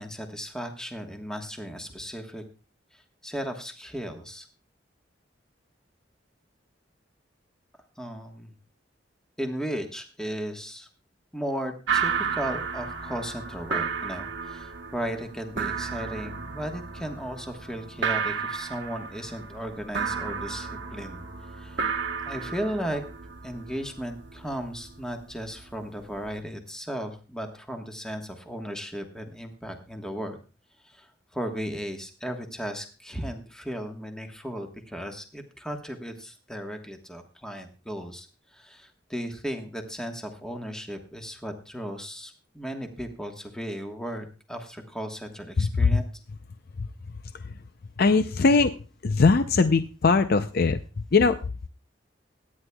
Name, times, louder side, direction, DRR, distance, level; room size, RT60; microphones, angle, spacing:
voice 1, 0.0-2.4 2.9-4.5 8.0-8.5 9.4-10.9 11.3-21.2 21.5-21.9 22.2-23.0 23.4-30.4 30.8-31.1 31.3-38.3 38.5-46.0, equal, 5° left, 4 dB, 1.3 m, -35 dB
sound 1, 11.9-26.4, right 6 dB, 80° right, 1.1 m, -33 dB
voice 2, 45.6-46.0 46.8-47.6 48.0-48.7 49.0-51.4, left 4 dB, 55° left, 10 dB, 0.5 m, -22 dB
23.0 x 9.7 x 2.3 m, 0.34 s
head